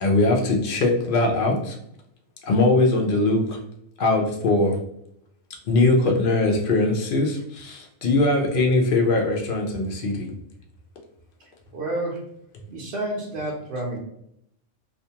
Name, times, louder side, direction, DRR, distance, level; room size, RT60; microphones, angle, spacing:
voice 1, 0.0-1.7 2.4-3.6 4.0-4.8 5.7-10.3, left 2 dB, 60° left, 1 dB, 0.6 m, -21 dB
voice 2, 11.7-12.2 12.7-14.0, right 1 dB, 65° right, -3 dB, 0.7 m, -29 dB
2.4 x 2.3 x 2.7 m, 0.74 s
omnidirectional pair, 1.3 m